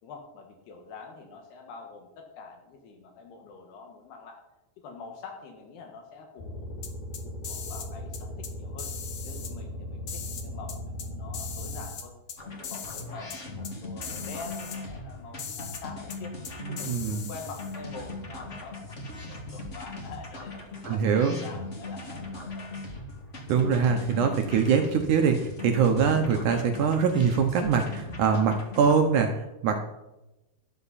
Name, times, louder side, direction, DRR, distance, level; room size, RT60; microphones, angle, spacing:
voice 1, 0.0-4.4 4.8-6.9 7.2-8.9 9.2-12.1 12.6-16.4 16.7-18.9 19.3-22.7, left 4 dB, 85° left, 2 dB, 3.6 m, -45 dB
sound 1, 6.4-11.9, left 1 dB, 50° left, 6.7 m, -38 dB
sound 2, 6.8-7.9 8.1-8.5 8.8-9.5 10.1-11.1 11.3-12.4 12.6-13.0 13.3-13.4 13.6-13.7 14.0-14.8 15.4-15.8 16.1-16.2 16.4-17.8, left 7 dB, 65° left, 1.4 m, -39 dB
sound 3, 12.4-28.9, left 2 dB, 30° left, 1.3 m, -40 dB
voice 2, 16.6-17.3 20.8-21.4 23.5-29.9, right 6 dB, 70° right, 5 dB, 2.0 m, -23 dB
13.0 x 12.5 x 4.1 m, 0.96 s
omnidirectional pair, 4.6 m